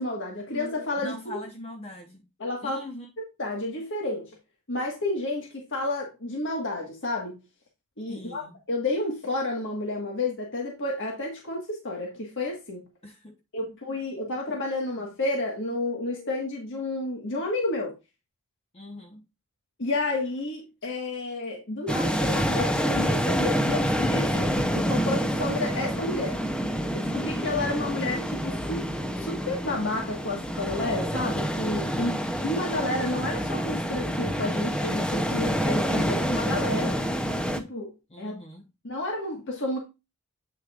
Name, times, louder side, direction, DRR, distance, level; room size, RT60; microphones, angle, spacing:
voice 1, 0.0-1.1 2.4-2.8 3.4-4.3 4.7-7.4 8.0-12.9 13.5-17.9 19.8-26.4 26.9-28.8 29.2-32.1 32.4-37.0 37.5-38.3 38.8-39.8, left 2 dB, 60° left, 1.5 m, -31 dB
voice 2, 1.0-2.3 2.6-3.1 8.1-8.6 13.0-13.8 18.7-19.2 31.9-32.5 38.1-38.7, left 1 dB, 30° left, 0.9 m, -42 dB
sound 1, 21.9-37.6, equal, 5° left, 0.6 m, -27 dB
8.5 x 6.4 x 2.4 m
head